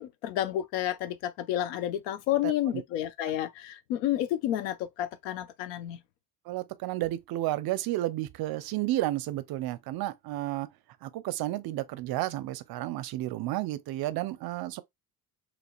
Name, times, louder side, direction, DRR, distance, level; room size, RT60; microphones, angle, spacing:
voice 1, 0.0-6.0, left 12 dB, 75° left, 0.6 m, -30 dB
voice 2, 2.4-2.8 6.5-10.7 11.0-14.8, right 15 dB, 50° right, 0.5 m, -32 dB
3.0 x 2.8 x 2.4 m
hypercardioid pair, 60°, 48 cm